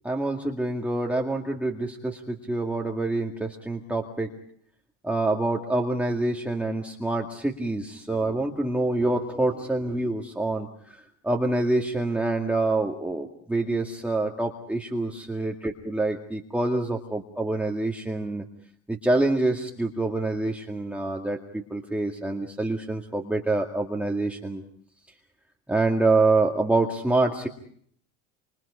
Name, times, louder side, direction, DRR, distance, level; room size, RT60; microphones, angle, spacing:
voice 1, 0.0-4.3 5.0-10.7 11.2-18.4 18.9-24.6 25.7-27.5, right 2 dB, 5° right, 0 dB, 2.1 m, -26 dB
28.5 x 26.5 x 5.0 m, 0.64 s
cardioid pair, 135°, 34 cm